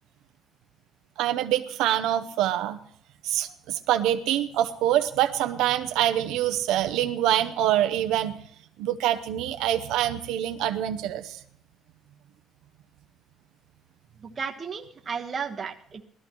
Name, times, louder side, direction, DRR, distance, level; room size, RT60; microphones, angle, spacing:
voice 1, 1.2-2.8 3.2-8.3 8.8-11.4, right 12 dB, 85° right, 7 dB, 0.8 m, -25 dB
voice 2, 14.2-16.0, right 6 dB, 25° right, 2 dB, 1.3 m, -34 dB
19.5 x 13.5 x 3.1 m, 0.62 s
cardioid pair, 155°, 0 cm